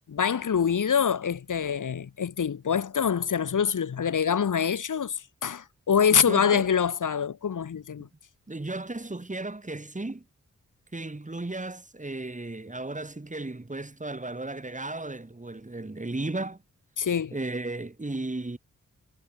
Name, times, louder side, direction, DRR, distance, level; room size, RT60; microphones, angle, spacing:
voice 1, 0.1-8.1 17.0-17.3, left 7 dB, 90° left, 3.4 m, -25 dB
voice 2, 6.1-6.7 8.5-10.2 10.9-16.6 17.3-18.6, right 2 dB, 25° right, 5.4 m, -35 dB
cardioid pair, 65°, 30 cm